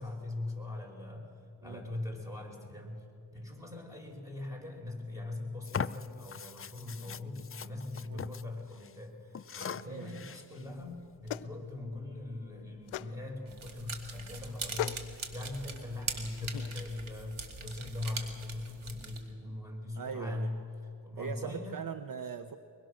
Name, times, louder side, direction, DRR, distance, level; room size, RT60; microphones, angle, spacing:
voice 1, 0.0-1.3 1.6-3.1 3.3-20.7 21.0-21.8, left 2 dB, 5° right, 1 dB, 5.2 m, -41 dB
sound 1, 5.6-8.4 8.7-8.9 9.3-10.6, left 6 dB, 30° left, 0.5 m, -40 dB
voice 2, 8.0-8.4 9.9-10.2 20.0-20.5 21.2-22.6, right 6 dB, 45° right, 10 dB, 0.9 m, -40 dB
sound 2, 10.7-16.8, left 13 dB, 85° left, 0.7 m, -43 dB
sound 3, 13.5-19.2, right 4 dB, 75° right, 2.4 m, -42 dB
23.5 x 22.0 x 6.5 m, 2.7 s
cardioid pair, 75°, 48 cm